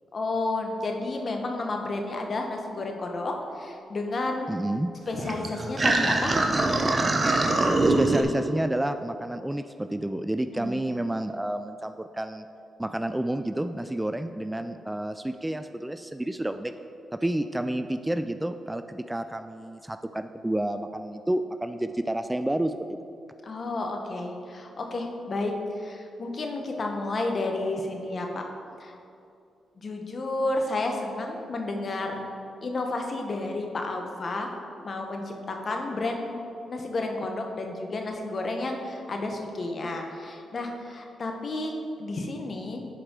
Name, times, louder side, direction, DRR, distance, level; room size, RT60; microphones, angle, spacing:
voice 1, 0.1-4.5 5.1-6.3 10.5-10.8 23.4-28.4 28.8-29.0 29.8-32.2 32.6-34.5 34.8-41.7 42.0-42.8, left 2 dB, 50° left, 3 dB, 1.1 m, -31 dB
voice 2, 4.5-4.9 7.6-12.5 12.8-16.7 17.2-23.0, right 1 dB, 10° right, 9 dB, 0.3 m, -30 dB
sound 1, 5.1-8.2, right 2 dB, 40° right, 0.9 m, -23 dB
11.0 x 4.8 x 3.8 m, 2.6 s
supercardioid pair, 55°, 0 cm